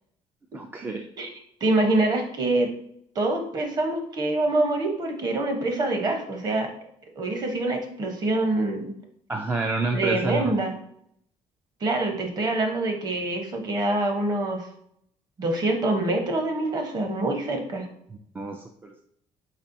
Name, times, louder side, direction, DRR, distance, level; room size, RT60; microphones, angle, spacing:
voice 1, 0.5-1.0 9.3-10.5 18.4-19.0, right 3 dB, 20° right, 3 dB, 0.3 m, -29 dB
voice 2, 1.6-2.7 3.1-6.7 7.2-8.9 9.9-10.7 11.8-14.7 15.4-17.9, right 2 dB, 40° right, 4 dB, 0.9 m, -25 dB
4.3 x 4.2 x 2.6 m, 0.71 s
cardioid pair, 150°, 11 cm